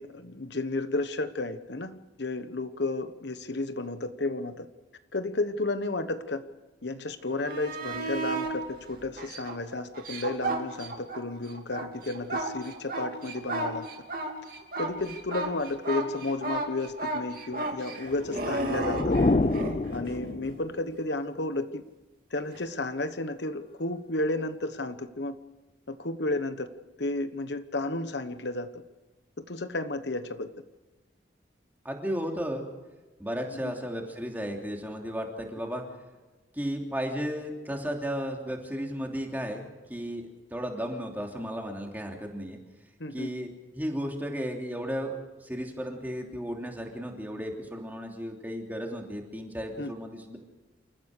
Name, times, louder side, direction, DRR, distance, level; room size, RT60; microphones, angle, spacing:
voice 1, 0.0-4.6 5.1-6.4 6.8-13.9 14.8-19.2 19.9-21.8 22.3-25.4 25.9-26.7 27.0-28.7 29.5-30.5 33.6-33.7 43.0-43.3 49.8-49.9, left 2 dB, 70° left, 10 dB, 1.1 m, -32 dB
sound 1, 7.3-8.5 9.2-11.2 11.5-19.8 22.5-22.6, right 3 dB, 50° right, 3.1 m, -33 dB
sound 2, 18.1-20.8, left 2 dB, 35° left, 0.6 m, -27 dB
voice 2, 31.8-32.6 33.2-35.8 36.5-42.6 43.1-45.1 45.4-50.4, equal, 10° right, 1 dB, 3.0 m, -34 dB
28.5 x 14.5 x 6.7 m, 1.2 s
head